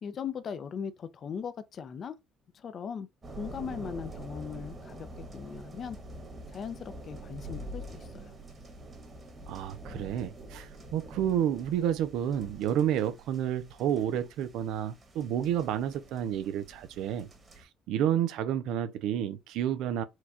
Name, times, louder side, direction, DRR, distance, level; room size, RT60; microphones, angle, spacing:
voice 1, 0.0-2.2 2.5-3.1 3.4-5.1 5.3-6.0 6.5-8.3, left 7 dB, 45° left, 0.7 m, -39 dB
sound 1, 3.2-17.6, right 1 dB, 30° right, 1.5 m, -46 dB
voice 2, 9.5-17.3 17.6-20.0, right 10 dB, 75° right, 0.6 m, -30 dB
4.6 x 2.4 x 4.2 m
cardioid pair, 100°, 0 cm